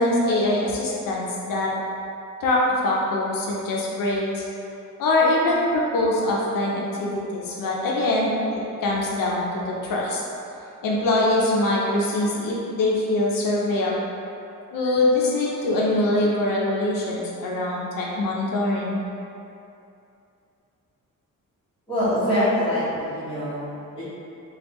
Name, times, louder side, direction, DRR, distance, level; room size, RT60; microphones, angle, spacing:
voice 1, 0.0-1.7 2.4-4.4 5.0-8.3 8.8-10.2 10.8-14.0 14.7-19.0, left 2 dB, 85° left, -4 dB, 0.6 m, -23 dB
voice 2, 21.9-24.0, equal, 15° left, -13 dB, 1.3 m, -24 dB
3.4 x 2.3 x 2.9 m, 2.7 s
wide cardioid pair, 145°, 33 cm